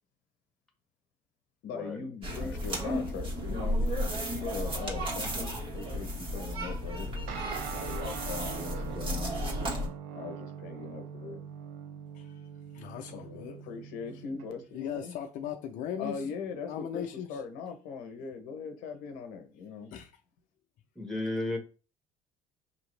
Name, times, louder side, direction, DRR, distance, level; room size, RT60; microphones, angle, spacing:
voice 1, 1.6-4.0 4.4-7.1 7.7-11.4 13.1-15.2 16.0-19.9, left 5 dB, 85° left, 0.9 m, -40 dB
sound 1, 2.2-9.9, equal, 35° right, 1.5 m, -33 dB
voice 2, 2.4-2.9 8.9-9.3 21.0-21.6, left 2 dB, 5° left, 1.3 m, -36 dB
Guitar, 7.3-15.0, right 8 dB, 90° right, 0.7 m, -43 dB
voice 3, 12.8-13.6 14.7-16.1 16.6-17.3 19.9-20.1, left 9 dB, 65° left, 0.6 m, -37 dB
5.8 x 2.9 x 3.2 m
cardioid pair, 115°, 14 cm